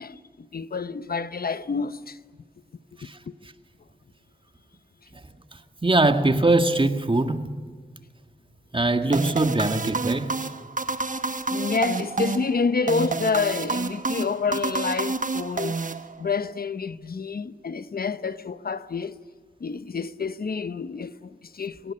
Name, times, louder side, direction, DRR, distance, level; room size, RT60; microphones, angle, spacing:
voice 1, 0.0-2.2 3.3-3.4 11.5-15.8 16.2-19.1 19.6-21.9, left 5 dB, 65° left, 0.8 m, -28 dB
voice 2, 5.8-7.5 8.7-10.3, right 2 dB, 30° right, 1.9 m, -21 dB
sound 1, 9.1-16.5, right 3 dB, 50° right, 1.2 m, -29 dB
23.5 x 18.0 x 9.8 m
wide cardioid pair, 60°, 17 cm